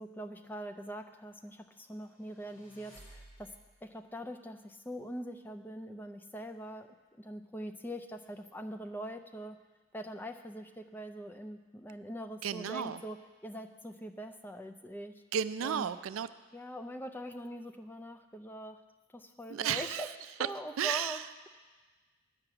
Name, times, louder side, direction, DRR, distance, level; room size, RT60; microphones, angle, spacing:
voice 1, 0.0-3.5 3.8-9.6 9.9-15.2 15.6-15.9 16.5-18.8 19.1-21.5, equal, 10° left, 7 dB, 0.4 m, -43 dB
sound 1, 2.1-3.9, right 1 dB, 30° left, 2.7 m, -56 dB
voice 2, 12.4-13.0 15.3-16.3 19.5-20.1 20.8-21.2, right 8 dB, 80° right, 14 dB, 0.4 m, -33 dB
9.9 x 5.8 x 7.9 m, 1.3 s
head